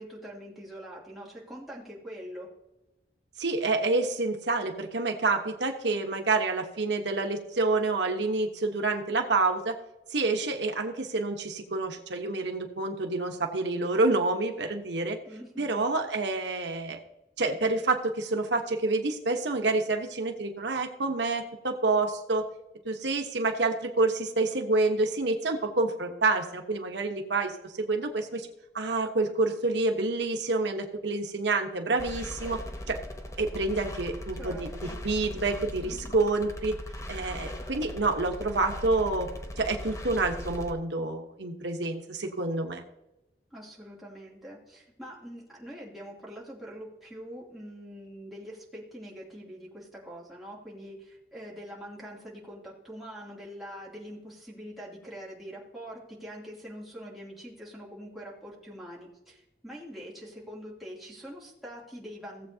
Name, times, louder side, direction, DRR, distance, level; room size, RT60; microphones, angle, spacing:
voice 1, 0.0-2.5 15.3-15.9 34.3-35.0 35.8-36.4 43.5-62.5, equal, ahead, -6 dB, 2.9 m, -44 dB
voice 2, 3.4-9.8 10.1-15.2 15.6-17.0 17.4-22.4 22.8-28.5 28.7-32.6 32.9-33.0 33.4-36.7 37.1-39.3 39.6-42.8, right 3 dB, 80° right, 4 dB, 1.2 m, -28 dB
sound 1, 32.0-40.7, left 1 dB, 15° left, 0.8 m, -39 dB
17.0 x 7.8 x 2.8 m, 0.94 s
head